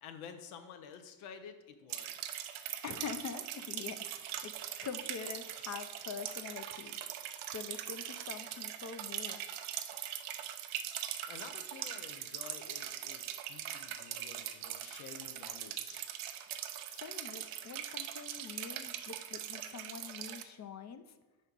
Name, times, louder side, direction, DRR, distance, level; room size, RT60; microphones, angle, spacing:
voice 1, 0.0-2.4 11.1-16.1, left 7 dB, 85° left, 8 dB, 0.8 m, -51 dB
sound 1, 1.9-20.4, right 11 dB, 80° right, 0.6 m, -41 dB
voice 2, 2.8-7.0 7.5-9.5 16.7-21.0, left 6 dB, 35° left, 10 dB, 0.5 m, -45 dB
4.8 x 4.3 x 5.2 m, 1.2 s
supercardioid pair, 85°, 48 cm